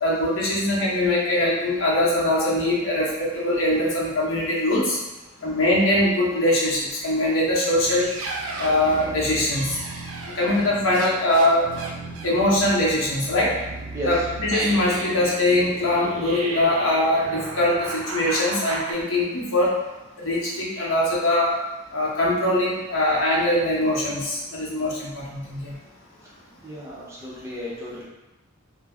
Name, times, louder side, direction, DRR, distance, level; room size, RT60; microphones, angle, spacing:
voice 1, 0.0-5.0 5.4-8.0 8.6-9.8 10.4-11.7 12.2-13.5 14.1-19.7 20.2-21.6 21.9-25.7, left 1 dB, 65° left, -5 dB, 0.8 m, -22 dB
sound 1, 7.7-18.9, right 2 dB, 80° right, 0.4 m, -34 dB
voice 2, 13.9-14.3 26.6-28.0, equal, 15° right, -6 dB, 0.5 m, -32 dB
2.3 x 2.1 x 3.4 m, 1.0 s
head